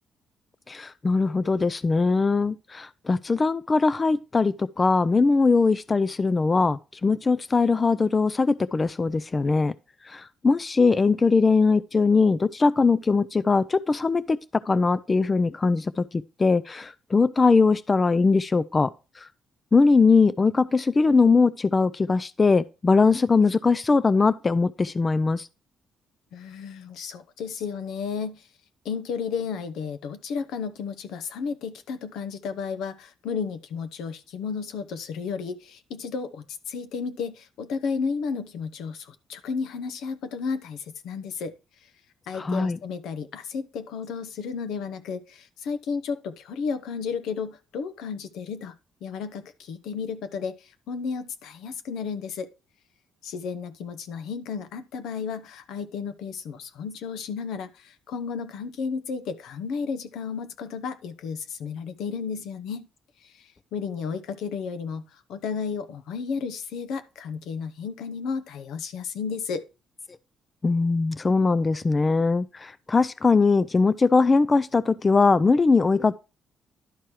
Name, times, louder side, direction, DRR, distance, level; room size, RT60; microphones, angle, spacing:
voice 1, 0.7-9.7 10.0-18.9 19.2-19.3 19.7-25.5 42.3-42.8 70.6-76.2, left 4 dB, 30° left, 0.4 m, -21 dB
voice 2, 26.3-28.5 28.8-41.5 42.3-48.7 49.0-52.5 53.2-62.9 63.2-69.7, left 5 dB, 85° left, 0.9 m, -33 dB
11.5 x 4.5 x 4.8 m
cardioid pair, 90°, 0 cm